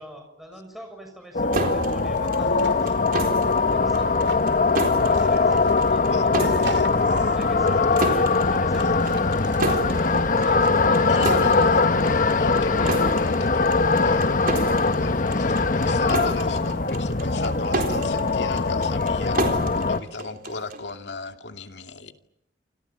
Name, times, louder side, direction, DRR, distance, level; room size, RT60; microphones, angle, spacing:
voice 1, 0.0-4.3 5.1-6.7 7.3-9.2 9.7-11.7 12.5-13.1, equal, ahead, 3 dB, 6.2 m, -45 dB
sound 1, 1.3-20.0, left 3 dB, 50° left, 1.0 m, -21 dB
sound 2, 1.5-20.9, right 2 dB, 55° right, 4.1 m, -32 dB
sound 3, 1.5-3.0 4.3-4.5 5.1-6.0 6.6-7.2 7.9-8.0 8.4-11.4, right 5 dB, 75° right, 2.6 m, -43 dB
voice 2, 6.0-7.4 8.6-9.3 11.1-11.9 12.4-22.1, left 3 dB, 75° left, 5 dB, 2.5 m, -35 dB
28.5 x 26.0 x 7.6 m, 0.79 s
head